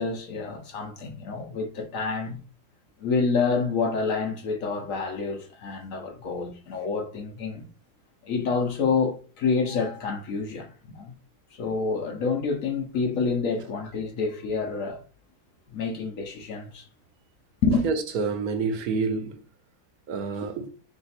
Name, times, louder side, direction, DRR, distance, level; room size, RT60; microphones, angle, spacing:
voice 1, 0.0-2.4 3.0-7.7 8.2-11.1 11.5-15.0 15.7-16.9 17.6-17.8, left 4 dB, 65° left, 1.0 m, -28 dB
voice 2, 17.8-19.4 20.1-20.7, right 4 dB, 70° right, 1.1 m, -28 dB
3.3 x 2.9 x 4.1 m
omnidirectional pair, 1.7 m